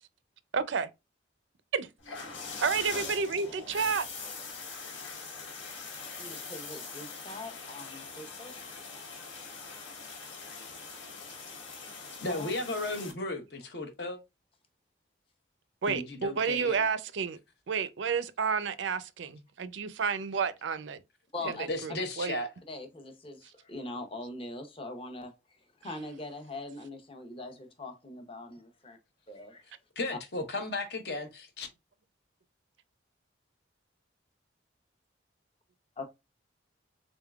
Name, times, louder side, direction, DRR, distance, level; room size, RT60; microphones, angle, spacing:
voice 1, 0.5-0.9 1.7-1.9 2.6-4.1 15.8-17.4 17.7-21.0 21.8-22.4, right 5 dB, 70° right, 0.4 m, -30 dB
sound 1, 2.0-13.1, left 4 dB, 80° left, 1.3 m, -42 dB
voice 2, 6.2-8.5 12.3-12.5 21.3-21.7 22.7-25.3 25.8-29.0 29.3-29.6 30.1-30.2 36.0-36.1, left 2 dB, 30° left, 0.7 m, -42 dB
voice 3, 12.2-14.2 15.9-16.8 21.7-22.5 30.0-31.7, left 2 dB, 55° left, 0.8 m, -35 dB
3.9 x 3.5 x 2.3 m
head